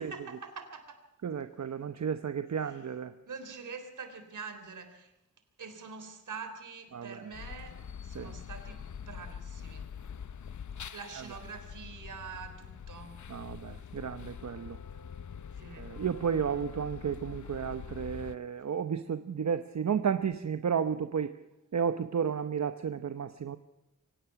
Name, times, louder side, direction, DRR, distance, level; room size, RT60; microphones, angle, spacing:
voice 1, 0.0-1.0 2.6-2.9 3.3-5.1 5.6-9.9 10.9-13.2 15.5-15.9, right 5 dB, 80° right, 8 dB, 3.7 m, -45 dB
voice 2, 1.2-3.1 6.9-7.2 8.1-8.3 13.3-14.8 15.8-21.3 21.7-23.6, right 7 dB, 65° right, 10 dB, 0.9 m, -32 dB
sound 1, 7.3-18.4, left 7 dB, 70° left, 0.9 m, -44 dB
24.5 x 18.0 x 5.9 m, 0.89 s
wide cardioid pair, 105°, 30 cm